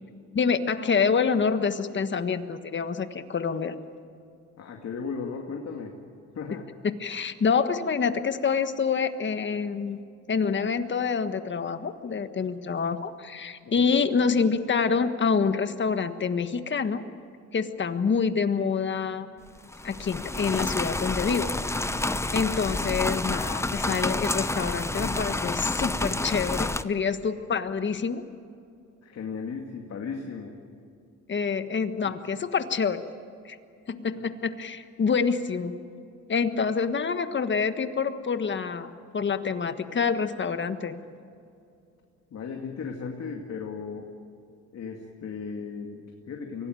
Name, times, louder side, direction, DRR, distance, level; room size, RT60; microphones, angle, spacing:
voice 1, 0.3-3.7 7.0-10.0 10.3-17.0 17.5-19.3 19.8-21.5 22.3-28.2 31.3-33.0 33.4-33.6 33.9-35.7 36.3-41.0, left 5 dB, 40° left, 9 dB, 1.5 m, -27 dB
voice 2, 4.6-6.0 6.3-6.6 13.6-13.9 29.0-30.6 32.0-32.1 42.3-44.1 44.7-46.7, left 5 dB, 55° left, 1 dB, 2.4 m, -36 dB
sound 1, 19.6-26.8, left 2 dB, 10° left, 0.7 m, -29 dB
24.5 x 17.5 x 9.2 m, 2.5 s
cardioid pair, 90°, 30 cm